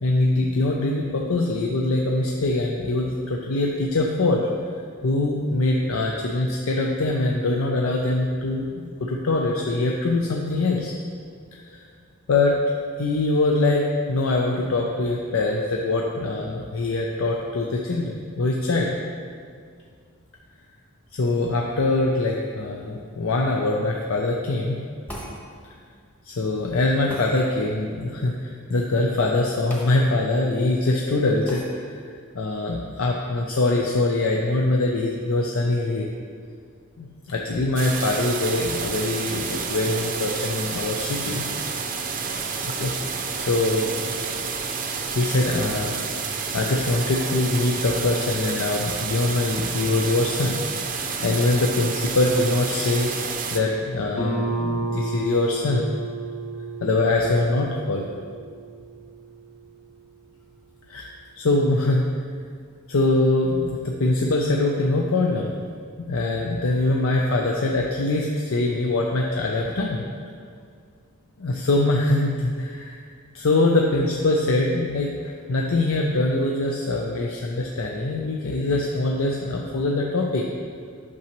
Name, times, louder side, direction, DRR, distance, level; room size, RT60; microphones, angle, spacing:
voice 1, 0.0-4.5 5.0-10.9 11.5-11.8 12.3-12.5 13.0-18.9 21.1-24.8 25.6-25.7 26.2-32.0 32.3-36.1 37.0-41.5 42.6-42.9 43.4-44.1 45.1-50.6 50.9-53.1 53.5-55.9 56.8-58.1 60.9-61.1 61.4-62.1 62.9-65.5 66.0-70.0 71.4-73.0 73.3-80.4, left 2 dB, 80° left, -1 dB, 0.5 m, -23 dB
sound 1, 25.1-25.4 27.1-27.3 29.7-29.9 30.3-30.4 31.5-31.7, equal, 10° left, 1.1 m, -37 dB
sound 2, 37.8-53.6, right 5 dB, 40° right, 0.5 m, -29 dB
Guitar, 54.2-59.6, right 2 dB, 30° left, 1.1 m, -31 dB
8.6 x 6.0 x 3.0 m, 2.1 s
head